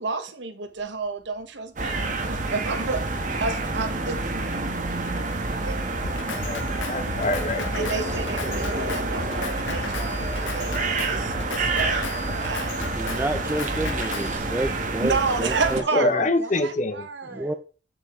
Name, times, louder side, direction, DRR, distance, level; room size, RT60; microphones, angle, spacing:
voice 1, 0.0-4.6 5.6-6.1 7.7-12.8 15.0-17.6, right 4 dB, 70° right, 1.0 m, -31 dB
sound 1, 0.6-10.2, right 1 dB, 15° left, 4.3 m, -46 dB
sound 2, 1.8-15.8, right 2 dB, 40° right, 1.1 m, -28 dB
Drum kit, 6.0-14.4, left 5 dB, 85° left, 0.8 m, -36 dB
voice 2, 6.2-8.1 15.9-17.1, left 2 dB, 40° left, 0.7 m, -26 dB
voice 3, 13.0-15.8 17.3-17.5, right 1 dB, 10° right, 0.4 m, -29 dB
6.8 x 6.8 x 3.5 m
head